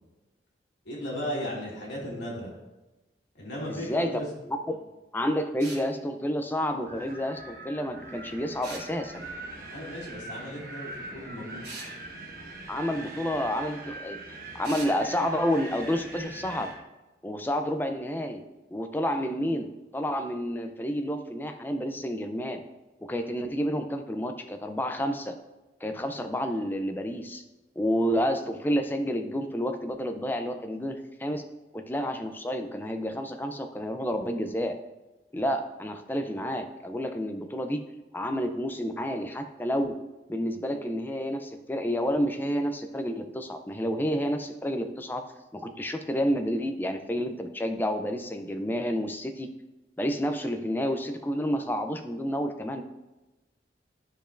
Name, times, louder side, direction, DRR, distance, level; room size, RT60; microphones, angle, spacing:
voice 1, 0.9-2.5 3.3-4.3 9.7-11.7, equal, 85° left, -4 dB, 2.3 m, -36 dB
voice 2, 3.7-4.2 4.5-4.6 5.1-9.2 12.7-14.2 14.5-16.7 17.2-18.4 18.7-22.6 23.0-25.3 25.8-27.4 27.8-31.4 31.7-34.8 35.3-37.8 38.1-40.0 40.3-45.2 45.5-49.5 50.0-52.8, equal, 10° left, 6 dB, 0.4 m, -30 dB
sound 1, 5.6-5.9 8.6-8.9 11.6-11.9 14.6-15.0, right 3 dB, 75° right, 2.1 m, -40 dB
Wind, 6.9-16.8, right 2 dB, 50° right, 1.1 m, -42 dB
11.5 x 5.1 x 2.5 m, 1.1 s
head